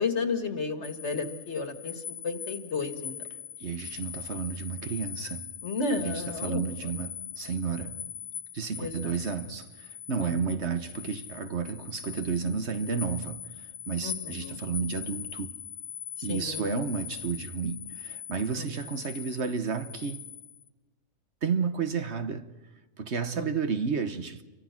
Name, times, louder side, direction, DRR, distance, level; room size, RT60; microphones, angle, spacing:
voice 1, 0.0-3.1 5.6-6.9 8.8-9.1 10.2-10.3 14.0-14.6 16.2-16.8 18.6-18.7 23.3-23.5, left 4 dB, 55° left, 2.2 m, -33 dB
sound 1, 0.8-20.7, left 8 dB, 75° left, 1.7 m, -42 dB
voice 2, 3.6-5.5 6.0-8.0 8.5-13.5 13.9-15.5 16.2-20.2 21.4-22.5 23.0-24.4, right 5 dB, 55° right, 1.4 m, -32 dB
28.5 x 24.0 x 5.9 m
omnidirectional pair, 1.5 m